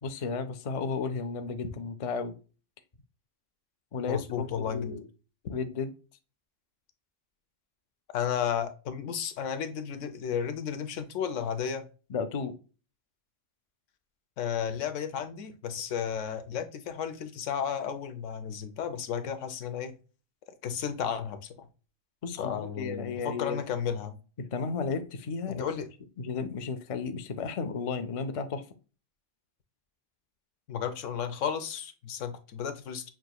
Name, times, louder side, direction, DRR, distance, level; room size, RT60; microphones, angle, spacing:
voice 1, 0.0-2.4 3.9-5.1 5.5-5.9 12.1-12.5 22.2-23.6 24.5-25.6 26.2-28.6, left 5 dB, 55° left, 0.4 m, -33 dB
voice 2, 4.1-5.0 8.1-11.9 14.4-19.9 20.6-21.7 22.4-24.2 25.5-25.9 30.7-33.1, left 8 dB, 85° left, 1.0 m, -33 dB
6.2 x 2.9 x 2.2 m
omnidirectional pair, 1.2 m